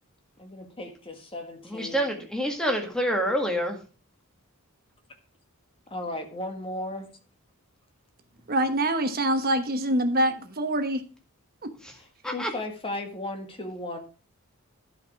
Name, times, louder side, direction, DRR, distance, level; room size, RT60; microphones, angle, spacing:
voice 1, 0.4-2.0 5.9-7.1 12.3-14.0, left 1 dB, 25° left, 4 dB, 1.7 m, -35 dB
voice 2, 1.7-3.8 12.2-12.5, equal, 5° left, 2 dB, 1.8 m, -27 dB
voice 3, 8.5-11.0 11.6-11.7, right 1 dB, 45° right, 7 dB, 1.2 m, -25 dB
12.0 x 5.2 x 4.8 m, 0.36 s
head